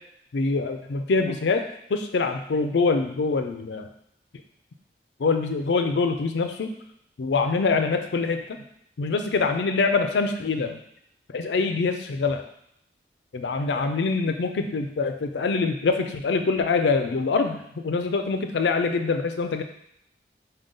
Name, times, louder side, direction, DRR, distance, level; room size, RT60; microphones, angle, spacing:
voice 1, 0.3-1.6 1.9-3.9 5.2-6.7 7.2-8.4 9.0-10.8 11.3-12.4 13.3-19.6, left 4 dB, 80° left, 6 dB, 0.4 m, -24 dB
5.0 x 2.3 x 3.8 m, 0.72 s
head